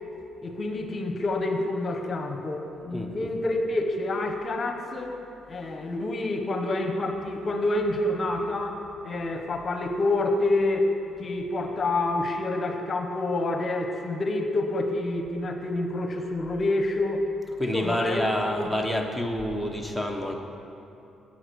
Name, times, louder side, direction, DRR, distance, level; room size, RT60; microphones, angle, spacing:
voice 1, 0.4-5.1 5.5-10.9 11.2-17.3 17.7-18.2, left 2 dB, 40° left, 4 dB, 0.9 m, -27 dB
voice 2, 2.8-3.3 11.7-11.8 17.6-20.3, left 1 dB, 5° right, 3 dB, 0.9 m, -28 dB
8.3 x 7.9 x 6.2 m, 2.8 s
cardioid pair, 90°, 0 cm